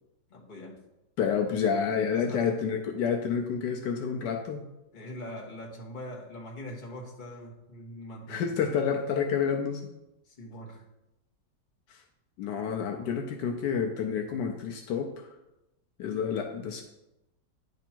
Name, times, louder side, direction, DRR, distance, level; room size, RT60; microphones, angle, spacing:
voice 1, 0.3-0.7 2.1-2.6 4.9-8.5 10.3-10.8, left 1 dB, 30° left, -3 dB, 1.3 m, -42 dB
voice 2, 1.2-4.7 8.3-9.9 11.9-12.0 12.4-15.3 16.0-16.8, left 7 dB, 75° left, 3 dB, 1.3 m, -29 dB
10.0 x 3.5 x 4.4 m, 0.91 s
omnidirectional pair, 1.9 m